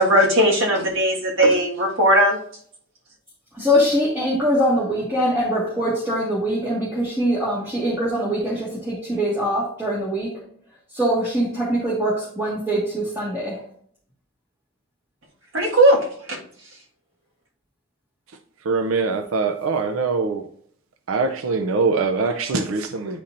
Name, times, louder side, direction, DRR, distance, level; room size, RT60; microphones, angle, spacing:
voice 1, 0.0-2.4 15.5-16.4, right 1 dB, 75° right, -2 dB, 1.6 m, -18 dB
voice 2, 3.5-10.3 10.9-13.6, equal, 10° right, -7 dB, 1.6 m, -23 dB
voice 3, 18.6-20.5 21.1-23.2, right 4 dB, 90° right, 6 dB, 0.5 m, -23 dB
10.0 x 4.2 x 2.5 m, 0.62 s
head